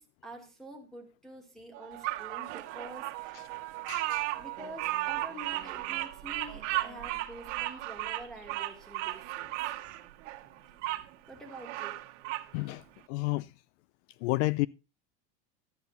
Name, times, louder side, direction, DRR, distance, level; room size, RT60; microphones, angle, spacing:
voice 1, 0.0-3.4 4.4-9.6 11.3-12.0, right 1 dB, ahead, 1.9 m, -47 dB
sound 1, 1.7-7.1, right 18 dB, 45° right, 1.1 m, -45 dB
Bird vocalization bird call bird song, 2.0-11.0 11.5-12.5, right 17 dB, 90° right, 1.2 m, -35 dB
voice 2, 3.9-4.3 12.5-12.8 13.1-13.5 14.2-14.7, left 21 dB, 70° left, 0.5 m, -30 dB
12.0 x 8.8 x 3.9 m
cardioid pair, 165°, 36 cm